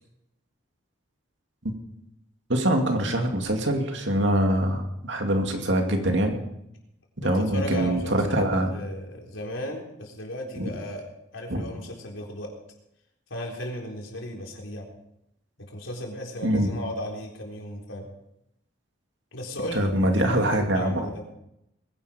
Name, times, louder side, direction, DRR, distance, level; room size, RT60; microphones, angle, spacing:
voice 1, 2.5-6.4 7.2-8.7 10.6-10.7 11.5-11.6 16.4-16.7 19.7-21.1, right 1 dB, 65° right, 3 dB, 2.5 m, -24 dB
voice 2, 7.2-11.0 11.3-12.5 13.3-14.9 15.6-18.1 19.3-21.2, left 1 dB, 85° left, 0 dB, 4.0 m, -35 dB
21.5 x 10.5 x 5.1 m, 0.82 s
head